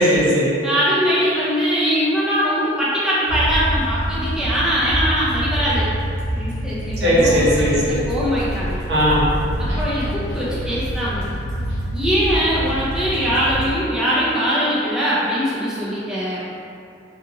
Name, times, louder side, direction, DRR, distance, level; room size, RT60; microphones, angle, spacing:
voice 1, 0.0-0.5 7.0-8.0 8.9-9.3, equal, 60° right, -8 dB, 0.7 m, -17 dB
voice 2, 0.6-5.9 6.3-7.5 7.9-8.8 9.8-11.3 11.9-16.4, equal, 5° right, -10 dB, 0.4 m, -21 dB
sound 1, 3.3-13.7, equal, 75° right, 1.2 m, -26 dB
2.7 x 2.4 x 2.8 m, 2.5 s
head